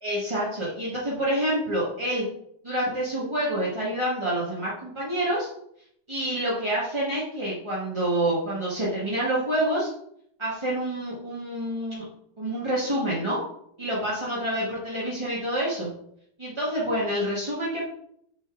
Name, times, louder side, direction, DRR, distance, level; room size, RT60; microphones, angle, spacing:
voice 1, 0.0-2.2 2.6-5.5 6.1-9.9 10.4-12.0 12.4-13.4 13.8-15.9 16.4-17.9, right 1 dB, 20° right, -7 dB, 1.0 m, -27 dB
6.3 x 3.9 x 4.6 m, 0.72 s
omnidirectional pair, 2.3 m